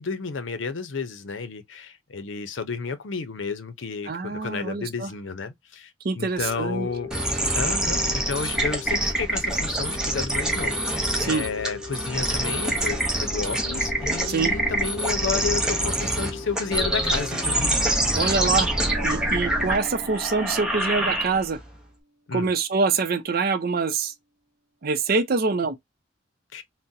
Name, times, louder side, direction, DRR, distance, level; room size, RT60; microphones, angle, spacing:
voice 1, 0.0-5.9 6.2-7.1 7.5-17.8 22.3-22.5 26.5-26.6, left 5 dB, 85° left, 0.6 m, -31 dB
voice 2, 4.1-5.1 6.0-6.9 11.2-11.4 14.2-14.5 18.1-18.7 19.0-21.6 22.3-24.1 24.8-25.8, right 4 dB, 55° right, 0.5 m, -25 dB
sound 1, 6.4-18.3, left 4 dB, 40° left, 0.9 m, -40 dB
sound 2, 7.1-21.6, right 1 dB, 5° right, 0.8 m, -26 dB
Bass guitar, 18.9-21.9, right 1 dB, 90° right, 0.9 m, -42 dB
3.8 x 2.1 x 2.6 m
head